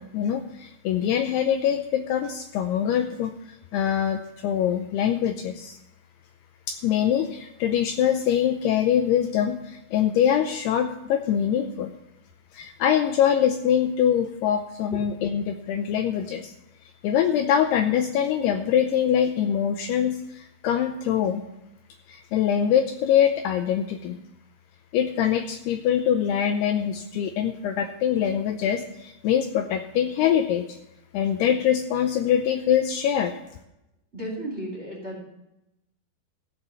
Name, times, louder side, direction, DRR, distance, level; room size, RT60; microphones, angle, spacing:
voice 1, 0.0-3.3 3.7-5.8 6.7-11.9 12.5-16.5 17.0-21.4 22.1-24.2 24.9-30.8 31.1-33.3, left 9 dB, 80° left, 7 dB, 2.5 m, -24 dB
voice 2, 34.1-35.2, right 1 dB, 20° right, -1 dB, 2.2 m, -34 dB
15.5 x 5.9 x 6.9 m, 0.89 s
omnidirectional pair, 5.1 m